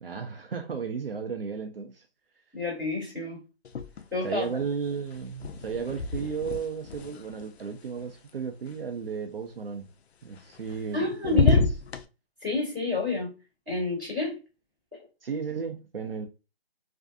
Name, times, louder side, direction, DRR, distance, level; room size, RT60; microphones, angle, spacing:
voice 1, 0.0-2.0 4.2-9.9 10.2-11.5 15.2-16.3, right 6 dB, 65° right, 0.5 m, -34 dB
voice 2, 2.5-3.4 4.1-4.5 10.9-11.7 12.4-13.3 13.7-14.4, left 2 dB, 5° right, 1.1 m, -29 dB
sound 1, 3.6-4.4 4.6-8.7 10.4-11.0 11.2-12.0, left 4 dB, 85° left, 0.5 m, -29 dB
2.5 x 2.4 x 2.4 m
hypercardioid pair, 175°, 31 cm